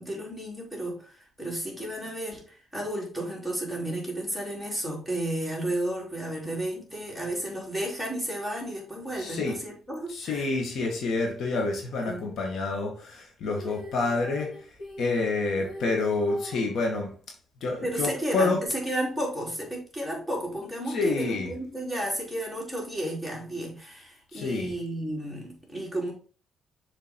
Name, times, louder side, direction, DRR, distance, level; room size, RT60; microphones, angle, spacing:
voice 1, 0.0-10.5 12.0-12.3 17.8-26.1, right 1 dB, 5° left, 3.7 m, -33 dB
voice 2, 9.2-9.6 10.1-17.1 17.6-18.6 20.9-21.5 24.3-24.7, left 3 dB, 65° left, 1.8 m, -28 dB
Female singing, 13.4-16.7 18.7-18.8, left 1 dB, 45° left, 3.7 m, -43 dB
6.7 x 4.9 x 4.5 m
cardioid pair, 90°, 0 cm